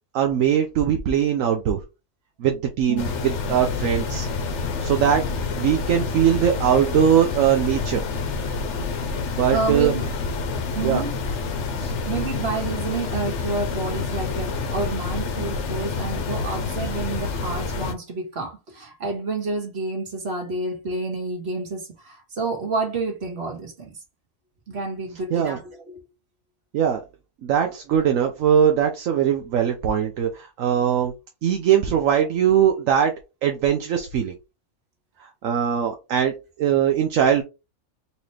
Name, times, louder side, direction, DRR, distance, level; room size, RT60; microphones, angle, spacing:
voice 1, 0.1-1.8 2.4-4.3 4.8-5.2 5.6-8.0 9.3-9.9 10.8-11.0 11.8-11.9 25.3-25.6 26.7-27.0 27.4-31.1 31.4-33.1 33.4-34.3 35.4-36.3 36.6-37.4, right 9 dB, 75° right, 1.0 m, -21 dB
sound 1, 3.0-17.9, left 4 dB, 60° left, 1.0 m, -28 dB
voice 2, 9.5-10.1 10.7-11.1 12.0-24.0 24.7-26.0, right 3 dB, 50° right, 1.6 m, -29 dB
4.1 x 3.0 x 3.2 m
omnidirectional pair, 1.4 m